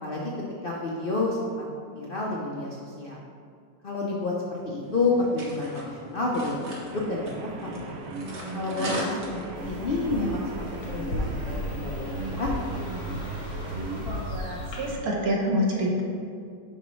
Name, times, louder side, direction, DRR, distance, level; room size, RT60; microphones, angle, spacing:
voice 1, 0.0-0.3 0.6-1.7 1.9-3.2 3.8-7.9 8.5-12.5, left 2 dB, 55° left, -4 dB, 0.6 m, -30 dB
sound 1, 4.8-9.8, right 1 dB, 45° right, 1.3 m, -38 dB
sound 2, 6.9-14.3, right 2 dB, 75° right, 0.5 m, -38 dB
sound 3, 9.5-15.0, equal, 80° left, 1.8 m, -34 dB
voice 2, 14.0-16.0, equal, 60° right, -2 dB, 1.4 m, -27 dB
10.5 x 4.0 x 3.1 m, 2.3 s
omnidirectional pair, 1.9 m